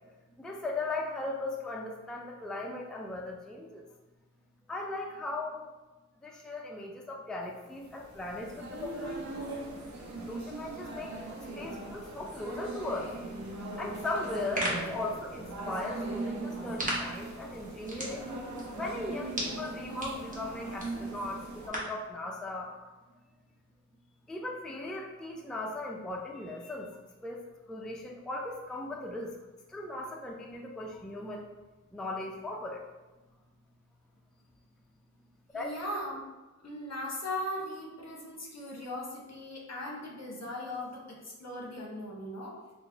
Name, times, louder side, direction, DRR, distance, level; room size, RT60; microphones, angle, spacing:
voice 1, 0.4-3.9 4.7-5.7 6.2-9.2 10.2-11.1 11.5-13.1 13.8-18.3 18.7-22.9 24.3-27.4 27.7-29.4 29.7-31.5 31.9-32.9 35.5-35.7, left 2 dB, ahead, -1 dB, 0.4 m, -38 dB
sound 1, 7.7-21.7, right 2 dB, 65° right, 0.7 m, -40 dB
sound 2, 14.2-22.0, right 1 dB, 25° right, 1.0 m, -39 dB
voice 2, 35.5-36.3 36.6-42.6, left 1 dB, 60° left, -1 dB, 0.8 m, -38 dB
4.0 x 2.1 x 3.3 m, 1.1 s
wide cardioid pair, 70°, 30 cm